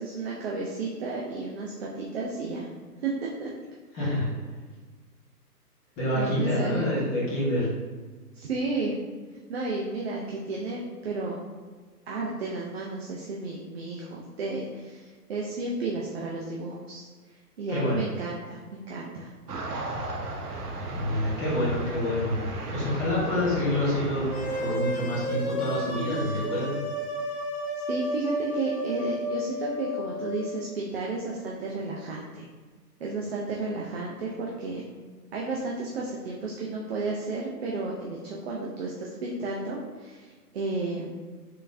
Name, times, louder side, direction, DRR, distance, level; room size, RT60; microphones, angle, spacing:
voice 1, 0.0-2.7 3.0-3.5 4.0-4.2 6.1-7.1 8.3-9.0 9.5-11.3 12.1-17.1 17.6-19.3 27.9-32.5 33.0-34.8 35.3-41.1, right 3 dB, 45° right, -3 dB, 0.4 m, -32 dB
voice 2, 3.9-4.3 6.0-7.7 17.7-18.0 20.9-22.4 22.7-24.3 24.6-26.7, left 1 dB, 15° left, -8 dB, 0.8 m, -27 dB
sound 1, 19.5-24.8, right 2 dB, 75° right, 0.8 m, -35 dB
sound 2, 24.3-30.5, equal, 45° left, 0.7 m, -32 dB
3.7 x 3.4 x 2.5 m, 1.4 s
hypercardioid pair, 145°, 47 cm